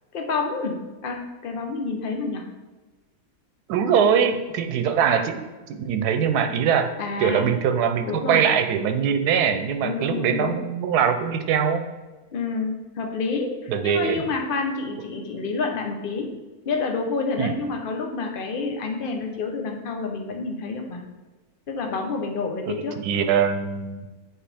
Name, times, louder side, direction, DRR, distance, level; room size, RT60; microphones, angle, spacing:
voice 1, 0.1-0.8 1.0-2.4 3.9-4.1 7.0-7.5 8.1-8.5 9.8-10.6 12.3-16.3 16.7-21.0 21.7-23.0, left 4 dB, 45° left, 3 dB, 0.8 m, -28 dB
voice 2, 3.7-5.4 5.7-6.9 7.2-11.8 13.7-14.2 17.4-17.5 22.7-24.0, right 7 dB, 90° right, 8 dB, 1.2 m, -22 dB
7.5 x 4.5 x 3.4 m, 1.2 s
omnidirectional pair, 1.6 m